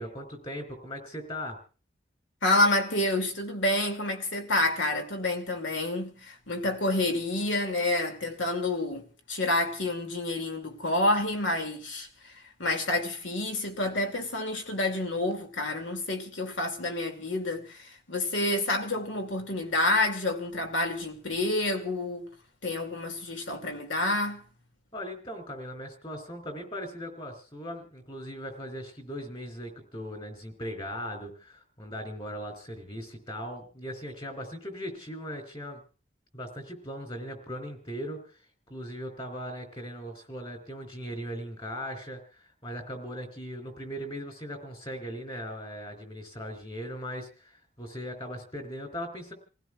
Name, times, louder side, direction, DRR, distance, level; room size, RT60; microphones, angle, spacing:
voice 1, 0.0-1.6 24.9-35.8 36.3-38.2 38.7-49.3, equal, 30° left, 3.8 m, -39 dB
voice 2, 2.4-22.3 22.6-24.5, left 2 dB, 85° left, 2.4 m, -28 dB
29.0 x 16.0 x 2.4 m
head